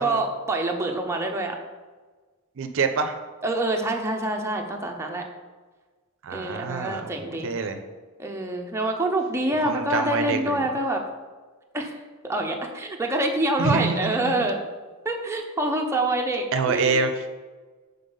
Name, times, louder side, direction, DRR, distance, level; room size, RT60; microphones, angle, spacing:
voice 1, 0.0-1.6 3.4-5.2 6.3-7.5 8.2-11.0 11.7-12.0 12.2-14.6 15.0-17.0, right 1 dB, 10° right, 1 dB, 0.5 m, -26 dB
voice 2, 2.6-3.2 6.2-7.8 9.6-10.6 13.6-14.4 16.5-17.3, right 4 dB, 60° right, 7 dB, 0.5 m, -26 dB
5.5 x 3.9 x 5.3 m, 1.4 s
head